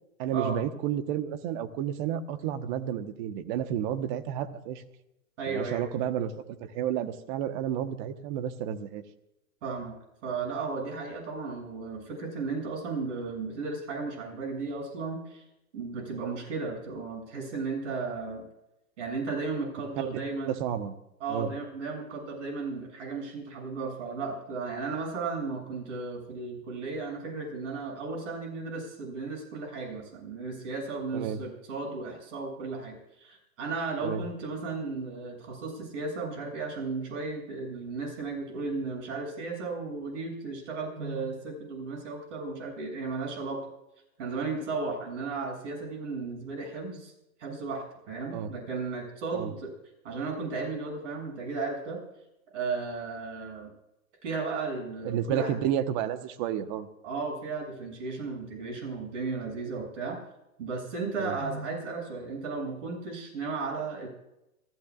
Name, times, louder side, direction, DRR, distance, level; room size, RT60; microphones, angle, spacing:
voice 1, 0.2-4.8 5.5-9.0 20.1-20.2 20.5-20.9 21.3-21.5 31.1-31.4 34.0-34.2 38.5-38.6 48.3-48.5 49.3-49.5 55.0-56.9 61.2-61.3, right 10 dB, 35° right, 11 dB, 1.2 m, -31 dB
voice 2, 5.4-5.9 9.6-10.0 10.2-15.4 15.7-18.4 19.0-20.5 21.2-43.6 44.2-47.1 47.4-49.7 50.0-52.0 52.5-53.7 54.2-55.5 57.0-60.2 60.6-64.1, right 4 dB, 55° right, 1 dB, 7.7 m, -35 dB
27.5 x 15.5 x 2.5 m, 0.90 s
hypercardioid pair, 140°, 43 cm